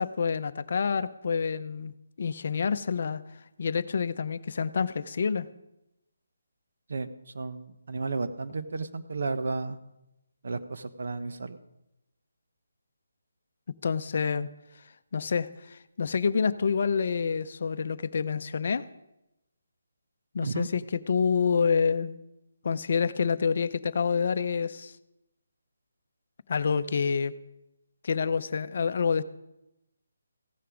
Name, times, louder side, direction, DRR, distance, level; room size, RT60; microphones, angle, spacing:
voice 1, 0.0-1.9 2.2-3.2 3.6-5.5 13.8-14.5 15.1-18.8 20.3-22.2 22.6-24.9 26.5-27.3 28.0-29.2, left 6 dB, 50° left, 13 dB, 0.6 m, -27 dB
voice 2, 7.3-9.8 10.4-11.6 20.4-20.7, right 3 dB, 65° right, 9 dB, 1.1 m, -33 dB
15.5 x 10.0 x 5.1 m, 0.89 s
hypercardioid pair, 165°, 0 cm